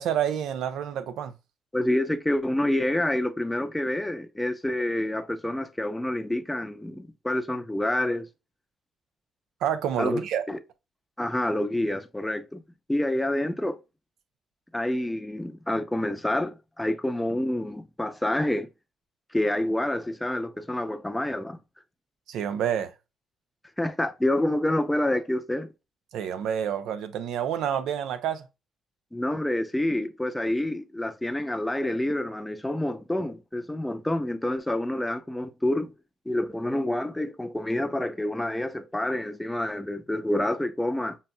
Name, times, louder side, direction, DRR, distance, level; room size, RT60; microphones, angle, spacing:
voice 1, 0.0-1.3 9.6-10.4 22.3-22.9 26.1-28.4, right 9 dB, 85° right, 0.5 m, -28 dB
voice 2, 1.7-8.3 10.0-10.6 11.2-12.6 12.9-13.8 14.7-18.7 19.3-21.6 23.8-25.7 29.1-35.9 36.3-41.2, left 1 dB, 10° left, 0.5 m, -28 dB
5.4 x 2.6 x 2.2 m
cardioid pair, 90°, 0 cm